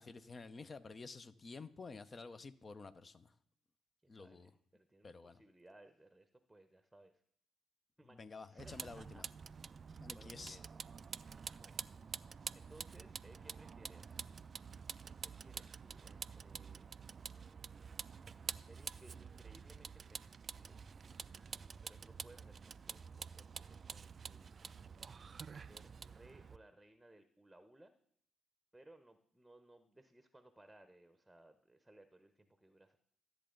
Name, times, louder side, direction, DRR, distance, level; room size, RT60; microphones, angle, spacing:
voice 1, 0.0-3.3 4.1-4.5 5.0-5.4 8.0-9.2 10.0-10.6, left 4 dB, 35° left, 12 dB, 0.8 m, -51 dB
voice 2, 4.0-7.1 8.0-9.2 9.5-10.7 11.5-12.2 12.5-14.3 15.2-16.9 18.6-20.8 21.8-24.7 25.5-27.9 28.7-33.0, right 1 dB, 10° right, 9 dB, 1.0 m, -63 dB
Vehicle, 8.6-26.6, right 6 dB, 45° right, 0.3 m, -48 dB
13.5 x 7.7 x 3.9 m, 0.69 s
hypercardioid pair, 45°, 0 cm